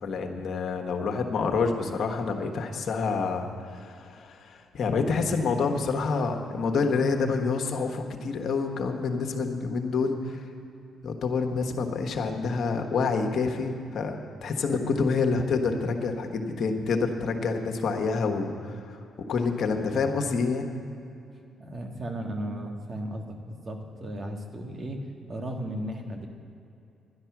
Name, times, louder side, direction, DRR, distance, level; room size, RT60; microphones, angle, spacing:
voice 1, 0.0-10.5 11.0-14.2 14.4-19.0 19.3-20.7, left 4 dB, 60° left, 4 dB, 1.3 m, -27 dB
voice 2, 21.6-25.0 25.3-26.3, right 1 dB, 40° right, 3 dB, 1.6 m, -35 dB
12.0 x 11.0 x 6.0 m, 2.7 s
cardioid pair, 90°, 0 cm